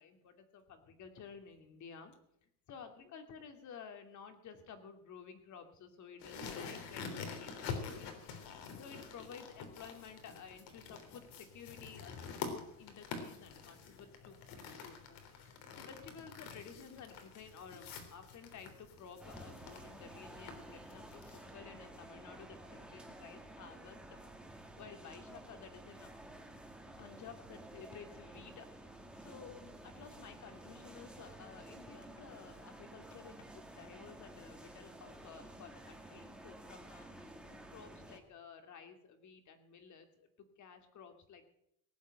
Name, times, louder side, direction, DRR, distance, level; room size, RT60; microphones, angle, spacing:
voice 1, 0.0-14.4 14.8-15.2 15.7-24.2 24.5-26.1 27.0-28.9 29.2-41.5, left 6 dB, 40° left, 7 dB, 2.6 m, -53 dB
sound 1, 6.2-21.4, left 5 dB, 60° left, 3.6 m, -47 dB
sound 2, 19.2-38.2, right 1 dB, ahead, 2.1 m, -52 dB
18.5 x 7.3 x 8.9 m, 0.75 s
supercardioid pair, 125°, 44 cm